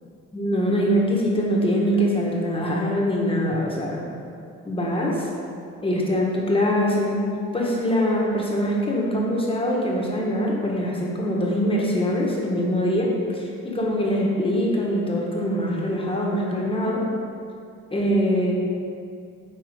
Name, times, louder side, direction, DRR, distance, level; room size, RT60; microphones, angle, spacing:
voice 1, 0.3-4.0 4.6-5.3 5.8-7.2 7.5-17.1 17.9-18.5, equal, 20° left, -3 dB, 1.3 m, -23 dB
7.4 x 4.5 x 3.6 m, 2.4 s
cardioid pair, 90°, 30 cm